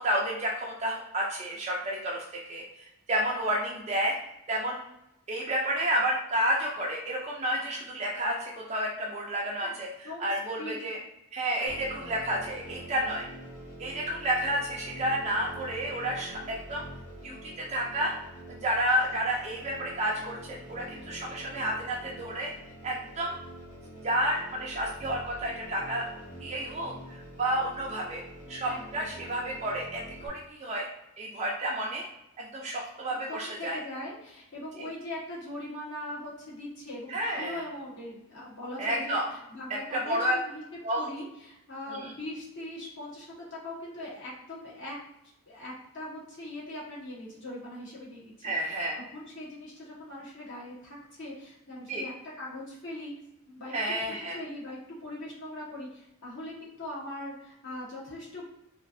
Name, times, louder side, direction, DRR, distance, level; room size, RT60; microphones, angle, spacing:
voice 1, 0.0-4.2 4.5-4.8 5.3-9.9 10.2-11.0 11.3-13.3 13.8-16.8 17.2-18.1 18.5-22.5 22.8-23.4 24.0-26.0 26.4-28.2 28.5-30.9 31.2-32.1 32.4-33.8 37.1-37.6 38.8-39.2 39.9-40.4 40.8-41.1 41.9-42.1 48.4-49.0 51.9-52.0 53.7-54.4, right 1 dB, 30° right, -3 dB, 0.4 m, -30 dB
voice 2, 9.6-10.3 10.5-10.8 28.6-29.2 33.1-45.0 45.5-48.7 49.1-52.1 52.4-53.1 53.5-53.8 54.3-58.4, left 1 dB, 55° left, -6 dB, 1.2 m, -41 dB
sound 1, 11.7-30.3, right 1 dB, 85° left, 1.3 m, -46 dB
3.0 x 2.5 x 2.6 m, 0.85 s
head